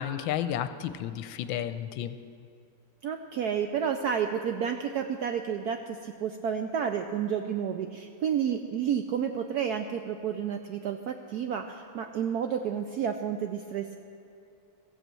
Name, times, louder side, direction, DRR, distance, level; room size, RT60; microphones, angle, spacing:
voice 1, 0.0-2.2, left 10 dB, 80° left, 11 dB, 1.3 m, -32 dB
voice 2, 3.0-13.9, right 8 dB, 75° right, 6 dB, 0.9 m, -30 dB
15.0 x 8.1 x 7.5 m, 2.5 s
omnidirectional pair, 2.2 m